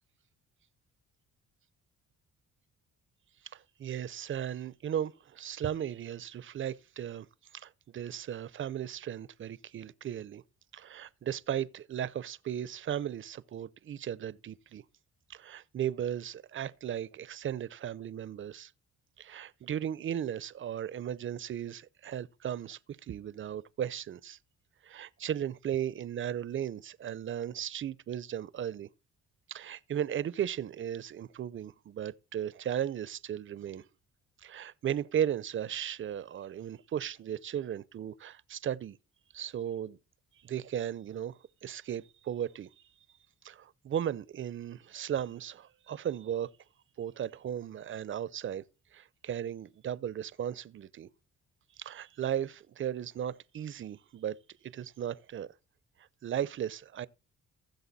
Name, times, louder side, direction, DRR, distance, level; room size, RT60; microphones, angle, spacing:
voice 1, 3.5-7.3 7.5-10.4 10.7-14.8 15.3-18.7 19.2-24.4 24.8-28.9 29.5-33.9 34.4-39.0 39.3-40.0 40.4-42.7 43.4-46.5 47.0-48.6 48.9-51.1 51.8-54.4 54.6-55.5 56.2-57.1, right 10 dB, 40° right, 0.6 m, -36 dB
15.5 x 6.6 x 4.1 m
cardioid pair, 90°, 30 cm